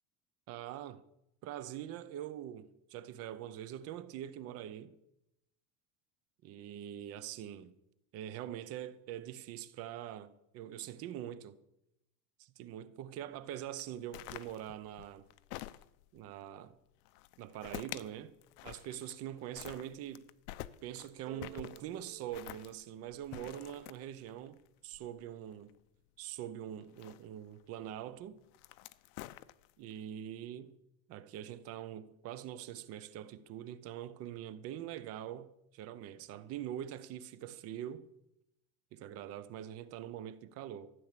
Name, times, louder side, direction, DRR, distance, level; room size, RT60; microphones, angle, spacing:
voice 1, 0.5-1.0 1.4-5.0 6.4-7.8 8.1-11.6 12.4-15.3 16.1-16.8 17.4-18.3 18.6-20.3 20.8-24.6 24.8-25.7 26.2-28.4 29.8-30.8 31.1-38.1 38.9-40.9, right 11 dB, 30° right, 0.6 m, -44 dB
sound 1, 13.8-16.2 17.0-18.1 18.4-19.3 19.5-25.7 26.8-27.6 28.4-29.9, left 16 dB, 65° left, 0.7 m, -48 dB
sound 2, 21.3-23.9, right 14 dB, 70° right, 1.8 m, -55 dB
14.0 x 9.6 x 7.4 m
cardioid pair, 170°, 48 cm